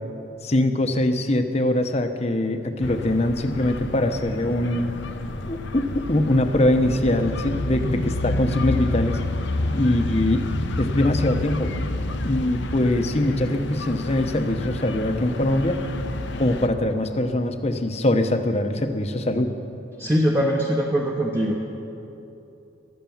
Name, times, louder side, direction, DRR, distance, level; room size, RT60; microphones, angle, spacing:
voice 1, 0.4-4.9 5.5-9.2 9.7-10.4 10.8-11.7 12.2-15.8 16.4-19.5, left 1 dB, 30° left, 7 dB, 0.8 m, -22 dB
sound 1, 2.8-16.7, left 2 dB, 60° left, 0.7 m, -29 dB
voice 2, 20.0-21.6, equal, 15° right, -2 dB, 0.9 m, -22 dB
15.0 x 11.5 x 7.2 m, 2.9 s
head